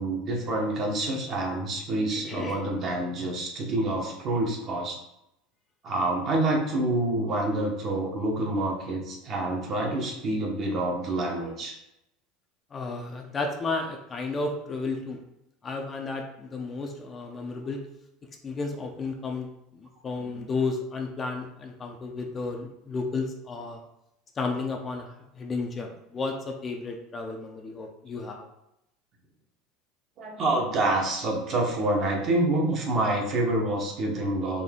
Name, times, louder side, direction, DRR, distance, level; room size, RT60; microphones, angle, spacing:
voice 1, 0.0-5.0 5.8-11.7 20.3-20.4 30.2-34.6, right 2 dB, 45° right, 0 dB, 1.1 m, -27 dB
voice 2, 2.1-2.6 12.7-15.2 15.6-17.9 18.4-19.5 19.7-23.8 24.4-28.5, left 3 dB, 25° left, 3 dB, 0.6 m, -33 dB
4.2 x 2.7 x 3.7 m, 0.83 s
supercardioid pair, 120°, 0 cm